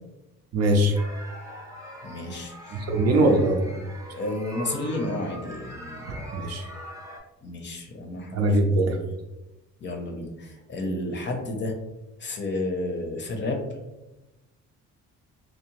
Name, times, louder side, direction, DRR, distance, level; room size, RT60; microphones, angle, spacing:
voice 1, 0.5-1.0 2.7-3.7 6.3-6.6 8.3-9.0, right 1 dB, 55° right, 3 dB, 0.5 m, -21 dB
sound 1, 0.9-7.2, right 1 dB, 10° right, 0.8 m, -42 dB
voice 2, 2.0-3.5 4.1-6.1 7.4-8.9 9.8-11.7 12.2-13.7, left 2 dB, 40° left, 3 dB, 0.6 m, -32 dB
2.8 x 2.0 x 2.8 m, 1.0 s
cardioid pair, 90°, 30 cm